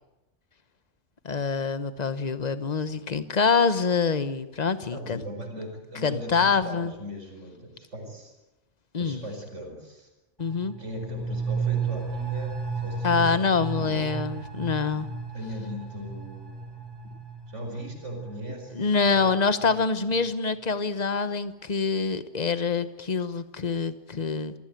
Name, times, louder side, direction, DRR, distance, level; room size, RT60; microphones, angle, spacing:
voice 1, 1.2-5.2 6.0-6.9 8.9-9.2 10.4-10.7 13.0-15.1 18.7-24.5, left 5 dB, 35° left, 13 dB, 1.2 m, -25 dB
voice 2, 4.9-8.3 9.0-10.1 10.8-14.1 14.9-15.0 15.3-16.8 17.5-19.5, equal, 85° right, 3 dB, 5.3 m, -38 dB
sound 1, 10.4-19.8 20.1-20.2, right 4 dB, 20° right, 4.0 m, -34 dB
27.5 x 16.0 x 9.2 m, 0.99 s
omnidirectional pair, 1.2 m